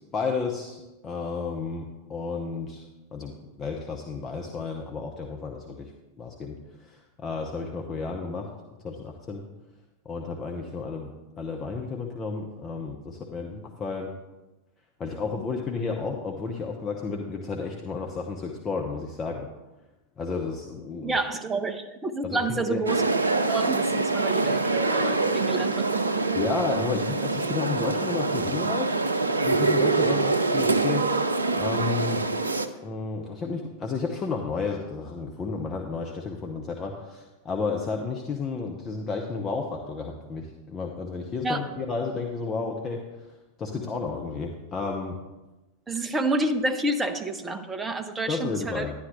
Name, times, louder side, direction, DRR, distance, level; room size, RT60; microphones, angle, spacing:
voice 1, 0.1-2.9 3.1-5.9 6.2-8.5 8.8-9.4 10.0-14.1 15.0-19.5 20.2-21.2 22.2-22.8 26.3-28.9 29.4-31.1 31.6-32.2 32.8-43.3 43.6-45.2 48.3-48.9, left 4 dB, 25° left, 1 dB, 1.0 m, -32 dB
voice 2, 21.0-23.0 23.5-26.3 41.4-41.7 45.9-48.9, right 2 dB, 15° right, 7 dB, 0.7 m, -29 dB
sound 1, 22.9-32.7, right 3 dB, 75° right, 0.5 m, -25 dB
11.5 x 10.0 x 3.2 m, 1.1 s
figure-of-eight pair, 90°, 0 cm